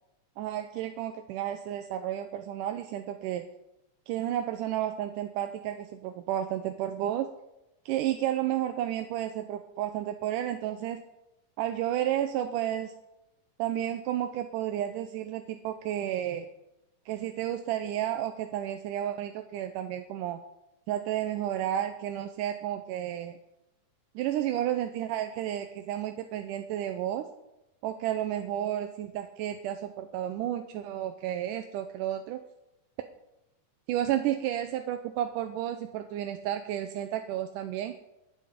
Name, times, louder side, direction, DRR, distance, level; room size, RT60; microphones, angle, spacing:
voice 1, 0.4-3.5 4.1-7.3 7.9-11.1 11.6-12.9 13.6-16.5 17.1-20.4 20.9-23.4 24.2-27.3 27.8-32.4 33.9-38.0, right 11 dB, 85° right, 7 dB, 2.3 m, -32 dB
21.5 x 7.7 x 5.1 m, 0.90 s
omnidirectional pair, 3.7 m